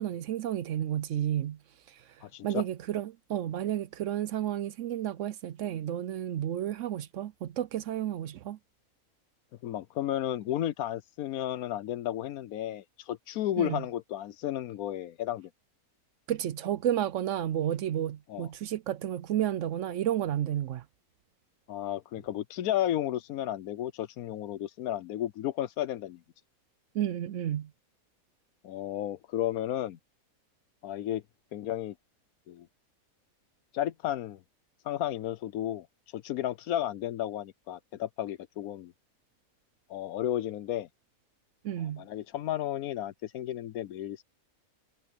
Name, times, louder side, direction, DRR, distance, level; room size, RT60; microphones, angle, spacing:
voice 1, 0.0-1.6 1.9-2.1 2.4-8.6 13.6-13.8 16.3-20.8 26.9-27.7 41.6-42.1, right 11 dB, 65° right, 0.8 m, -31 dB
voice 2, 2.2-2.6 9.6-15.5 18.3-18.5 21.7-26.2 28.6-30.0 30.8-31.2 31.5-31.9 32.5-32.7 33.7-34.4 34.8-38.9 39.9-40.9 42.0-44.2, left 12 dB, 80° left, 1.1 m, -33 dB
omnidirectional pair, 1.5 m